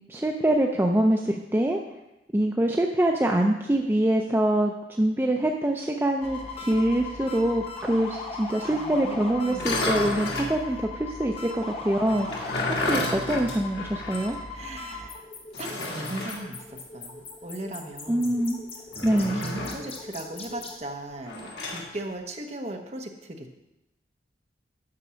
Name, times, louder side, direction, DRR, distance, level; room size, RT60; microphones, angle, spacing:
voice 1, 0.1-1.8 2.3-14.4 18.1-18.6 19.0-19.4, right 1 dB, 10° right, 2 dB, 0.4 m, -25 dB
sound 1, 6.2-20.8, left 3 dB, 35° left, 1.3 m, -39 dB
voice 2, 8.6-9.7 10.3-10.8 12.5-12.8 14.5-15.2 15.6-18.4 19.3-23.5, right 1 dB, 35° right, 3 dB, 0.9 m, -38 dB
Sliding Metal on Workbench, 9.5-10.6 12.1-14.4 14.6-14.7 15.5-16.4 18.9-19.9 21.3-21.9, left 2 dB, 70° left, 1.7 m, -31 dB
8.6 x 6.0 x 6.2 m, 0.95 s
head